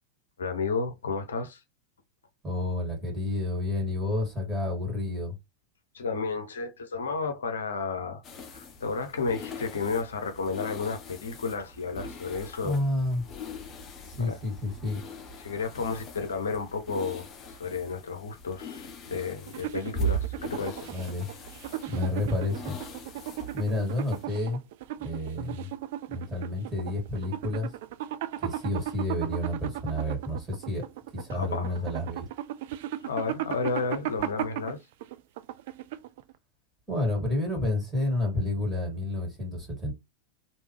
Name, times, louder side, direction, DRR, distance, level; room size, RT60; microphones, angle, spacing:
voice 1, 0.4-1.6 5.9-8.2 8.5-12.8 14.2-14.3 15.4-20.8 31.3-31.8 33.0-34.8, left 4 dB, 65° left, 0.7 m, -32 dB
voice 2, 2.4-5.4 12.6-13.2 14.1-15.0 20.9-21.3 21.9-22.8 23.5-24.6 25.0-25.7 26.1-27.7 28.4-30.8 31.1-32.3 36.9-39.9, left 2 dB, 10° right, 2.4 m, -30 dB
sound 1, 8.2-24.2, right 2 dB, 25° left, 1.0 m, -40 dB
sound 2, 19.5-36.3, right 13 dB, 50° right, 0.3 m, -36 dB
3.4 x 2.7 x 3.2 m
figure-of-eight pair, 90°, 0 cm